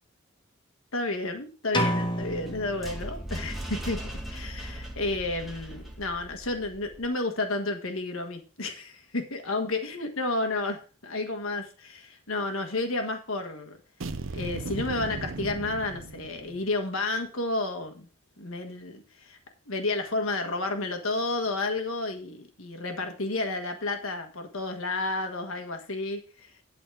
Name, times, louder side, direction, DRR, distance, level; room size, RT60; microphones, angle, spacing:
voice 1, 0.9-4.0 4.3-13.8 14.3-18.1 18.4-19.4 19.7-26.5, left 2 dB, 80° left, 5 dB, 1.6 m, -31 dB
sound 1, 1.7-3.6, equal, 20° left, 1.1 m, -30 dB
sound 2, 2.3-7.1, right 1 dB, ahead, 1.6 m, -39 dB
sound 3, 14.0-16.8, right 3 dB, 70° right, 0.7 m, -36 dB
11.5 x 4.2 x 6.3 m, 0.35 s
head